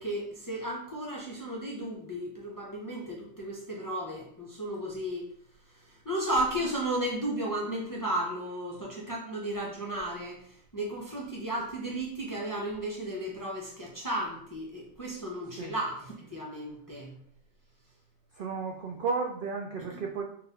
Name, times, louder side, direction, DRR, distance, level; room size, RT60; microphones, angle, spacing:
voice 1, 0.0-5.3 5.9-17.1, right 1 dB, 25° left, -3 dB, 0.5 m, -34 dB
voice 2, 18.3-20.2, right 4 dB, 65° right, 1 dB, 0.5 m, -33 dB
4.0 x 2.5 x 3.9 m, 0.65 s
omnidirectional pair, 1.4 m